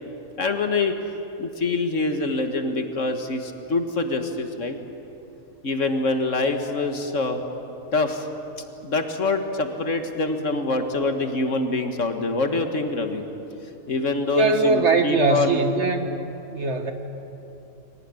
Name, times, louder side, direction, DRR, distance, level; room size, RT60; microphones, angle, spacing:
voice 1, 0.4-1.0 1.4-4.8 5.6-7.4 7.9-8.3 8.8-13.2 13.9-15.6, left 3 dB, 55° left, 6 dB, 1.8 m, -25 dB
voice 2, 14.3-16.1 16.5-16.9, right 3 dB, 50° right, 6 dB, 1.7 m, -21 dB
23.5 x 18.5 x 9.7 m, 3.0 s
omnidirectional pair, 1.5 m